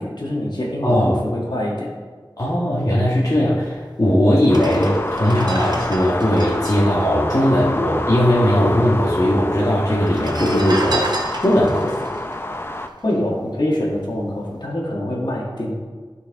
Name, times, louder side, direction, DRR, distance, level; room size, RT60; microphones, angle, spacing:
voice 1, 0.0-1.9 13.0-15.7, left 1 dB, 60° left, -3 dB, 1.8 m, -24 dB
voice 2, 0.8-1.2 2.4-11.1 11.4-12.1, equal, 45° left, -7 dB, 1.4 m, -18 dB
sound 1, 3.7-3.8 4.4-8.1 8.3-8.4 8.6-9.3 10.0-13.5 13.9-14.1, right 2 dB, 55° right, 0.9 m, -31 dB
sound 2, 4.5-12.9, left 1 dB, 30° left, 0.5 m, -28 dB
11.0 x 4.7 x 3.6 m, 1.5 s
wide cardioid pair, 45°, 9 cm